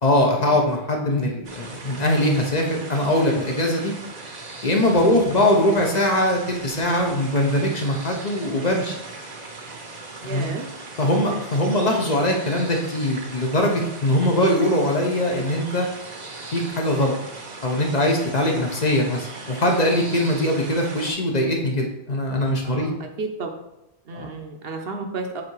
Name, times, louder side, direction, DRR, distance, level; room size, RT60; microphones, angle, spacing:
voice 1, 0.0-3.9 4.6-8.9 10.2-10.5 11.0-15.9 16.5-17.2 17.6-23.0 24.1-24.3, left 1 dB, 45° left, 1 dB, 0.8 m, -21 dB
sound 1, 1.4-21.1, right 3 dB, 45° right, 0.8 m, -39 dB
voice 2, 10.2-10.7 11.0-11.2 14.4-14.5 22.6-23.6 24.1-25.4, right 3 dB, 65° right, 4 dB, 1.0 m, -32 dB
7.5 x 2.8 x 4.6 m, 0.88 s
omnidirectional pair, 1.1 m